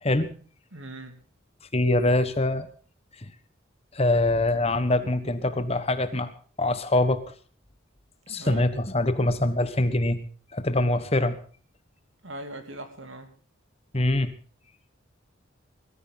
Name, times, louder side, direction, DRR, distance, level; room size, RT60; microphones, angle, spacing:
voice 1, 0.7-1.2 8.3-8.7 12.2-13.3, right 2 dB, 70° right, 7 dB, 2.9 m, -40 dB
voice 2, 1.7-2.7 3.9-6.3 6.6-7.2 8.3-10.2 10.5-11.4 13.9-14.3, left 2 dB, 30° left, 11 dB, 1.4 m, -24 dB
21.0 x 14.0 x 4.0 m, 0.41 s
head